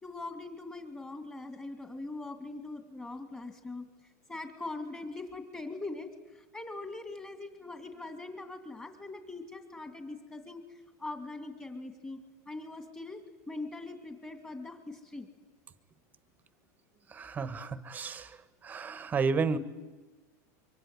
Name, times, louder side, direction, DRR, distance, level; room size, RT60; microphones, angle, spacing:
voice 1, 0.0-3.8 4.3-6.1 6.5-10.6 11.0-12.2 12.5-15.3, left 2 dB, 15° left, 7 dB, 2.5 m, -41 dB
voice 2, 17.1-18.3 18.6-19.6, right 5 dB, 20° right, 14 dB, 1.3 m, -31 dB
24.5 x 24.0 x 9.7 m, 1.2 s
supercardioid pair, 150°, 9 cm